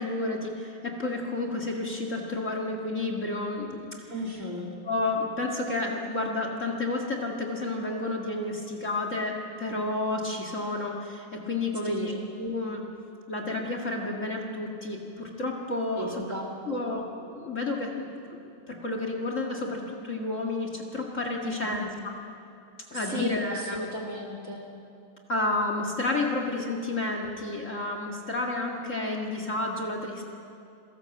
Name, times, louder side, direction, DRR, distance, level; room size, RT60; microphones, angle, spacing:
voice 1, 0.0-3.9 4.9-12.1 12.4-12.8 13.3-16.2 16.7-17.0 17.3-21.8 22.9-23.8 25.3-30.2, left 2 dB, 35° left, 2 dB, 2.2 m, -31 dB
voice 2, 4.1-4.7 11.8-12.2 16.0-16.8 21.4-22.0 22.9-24.6, equal, 35° right, -1 dB, 3.3 m, -35 dB
26.5 x 18.0 x 7.8 m, 2.6 s
omnidirectional pair, 2.4 m